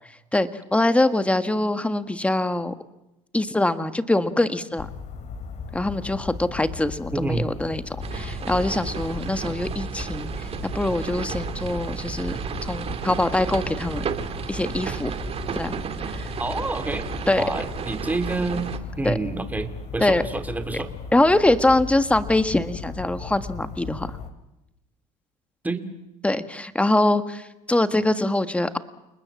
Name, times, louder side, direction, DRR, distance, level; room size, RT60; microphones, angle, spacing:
voice 1, 0.3-2.7 3.3-4.9 5.7-12.3 12.6-14.0 14.5-15.1 15.5-15.7 16.1-16.3 17.3-17.4 19.0-19.2 20.0-20.2 21.1-24.1 26.2-28.8, left 2 dB, 10° left, 10 dB, 1.6 m, -23 dB
sound 1, 4.8-24.3, left 5 dB, 50° left, 2.9 m, -37 dB
voice 2, 7.1-7.5 16.4-17.1 17.4-20.9 25.6-25.8, right 3 dB, 10° right, 7 dB, 2.7 m, -28 dB
sound 2, 8.0-18.8, right 7 dB, 40° right, 2.0 m, -33 dB
29.5 x 20.0 x 7.3 m, 0.92 s
supercardioid pair, 105°, 15 cm